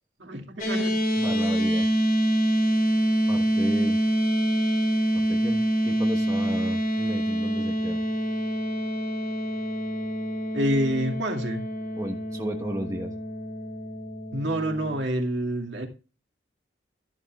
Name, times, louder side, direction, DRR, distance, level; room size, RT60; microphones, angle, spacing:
voice 1, 0.2-1.0 10.5-11.6 14.3-15.9, right 1 dB, 75° right, 2.2 m, -27 dB
sound 1, 0.6-15.0, right 1 dB, 45° left, 3.6 m, -26 dB
voice 2, 1.2-1.9 3.3-4.0 5.1-8.0 11.9-13.1, right 1 dB, 15° right, 1.1 m, -33 dB
12.5 x 11.0 x 2.4 m
head